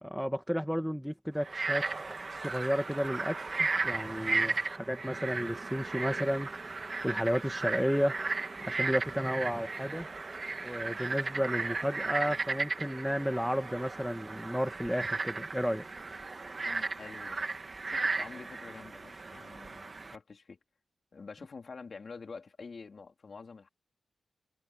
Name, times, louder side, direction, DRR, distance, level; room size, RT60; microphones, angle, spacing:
voice 1, 0.0-1.8 2.3-8.1 8.6-10.1 10.6-15.9, equal, ahead, 1.4 m, -32 dB
Frog, 1.4-20.2, right 3 dB, 35° right, 1.4 m, -35 dB
voice 2, 16.6-17.4 17.8-20.6 21.1-23.7, left 4 dB, 45° left, 3.2 m, -47 dB
wide cardioid pair, 120°, 0 cm